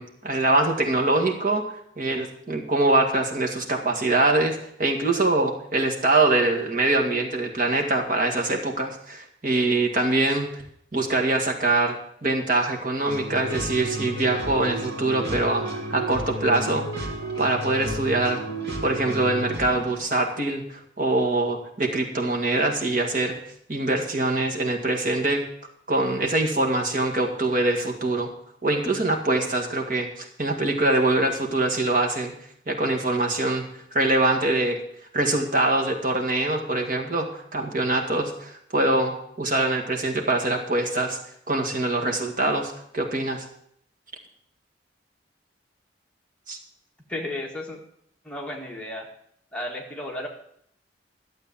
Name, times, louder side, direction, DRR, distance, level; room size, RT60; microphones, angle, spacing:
voice 1, 0.0-1.6 2.0-10.5 10.9-12.0 12.2-17.1 17.4-18.4 18.8-23.4 23.7-25.4 25.9-28.3 28.6-32.3 32.7-33.6 33.9-34.8 35.1-41.2 41.5-43.4 46.5-46.6, right 2 dB, 45° right, 2 dB, 2.0 m, -24 dB
sound 1, 13.1-20.0, right 1 dB, 65° right, 2.9 m, -32 dB
voice 2, 47.1-47.8 48.2-49.1 49.5-50.3, left 1 dB, 5° left, -1 dB, 1.8 m, -33 dB
13.0 x 8.0 x 7.3 m, 0.68 s
head